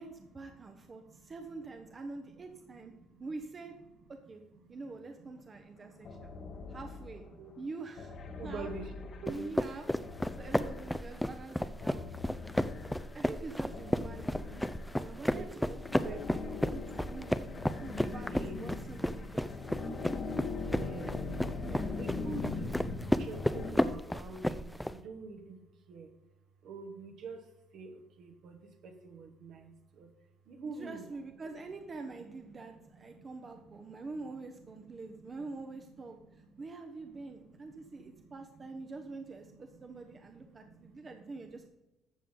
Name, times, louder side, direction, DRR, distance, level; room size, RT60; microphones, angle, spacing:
voice 1, 0.0-2.9 3.2-3.8 4.1-4.4 4.7-6.3 6.7-7.2 7.6-8.2 8.4-8.7 9.3-9.9 10.4-12.2 13.1-14.6 15.0-17.4 17.7-20.0 21.6-22.0 30.7-41.7, right 3 dB, 35° right, 4 dB, 1.1 m, -45 dB
voice 2, 5.7-6.8 7.3-7.5 8.3-9.5 10.3-10.4 11.8-12.7 14.0-16.8 17.5-18.6 18.8-21.4 22.0-25.6 25.9-26.1 26.6-30.1 30.5-31.0 31.4-31.5 33.1-33.2 33.6-33.9 35.1-35.6 36.5-36.6 37.3-38.3 40.0-40.1 40.4-41.1, right 4 dB, 60° right, 4 dB, 1.6 m, -48 dB
sound 1, 6.0-7.4 8.0-11.2 11.8-13.2 13.7-15.1 15.6-23.7, left 4 dB, 50° left, 1.3 m, -41 dB
sound 2, 9.3-24.9, left 1 dB, 5° left, 0.6 m, -33 dB
13.0 x 7.3 x 3.9 m, 1.0 s
hypercardioid pair, 50°, 0 cm